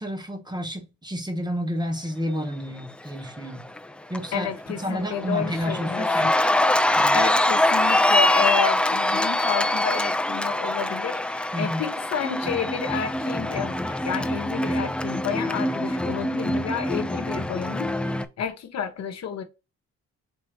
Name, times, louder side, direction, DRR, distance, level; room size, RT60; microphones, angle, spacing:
voice 1, 0.0-3.6 4.1-6.3 6.9-7.2 11.5-11.9, equal, 15° right, 1.0 m, -30 dB
Cheering, 3.4-3.8 4.1-18.3, left 1 dB, 5° left, 0.3 m, -24 dB
voice 2, 4.3-6.3 7.1-18.1 18.4-19.4, left 8 dB, 60° left, 0.9 m, -30 dB
3.6 x 2.9 x 4.4 m
cardioid pair, 90°, 30 cm